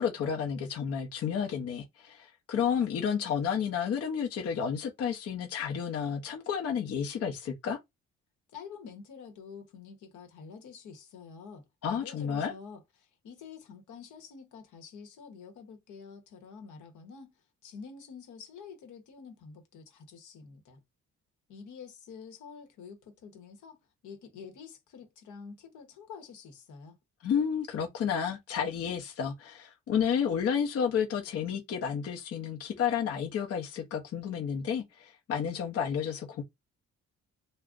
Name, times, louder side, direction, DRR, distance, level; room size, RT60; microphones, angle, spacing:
voice 1, 0.0-7.8 11.8-12.5 27.2-36.4, left 7 dB, 55° left, 0.7 m, -31 dB
voice 2, 8.5-17.3 17.6-20.8 21.5-23.8 24.0-27.0, left 6 dB, 80° left, 0.9 m, -48 dB
2.4 x 2.1 x 3.6 m
cardioid pair, 90°, 30 cm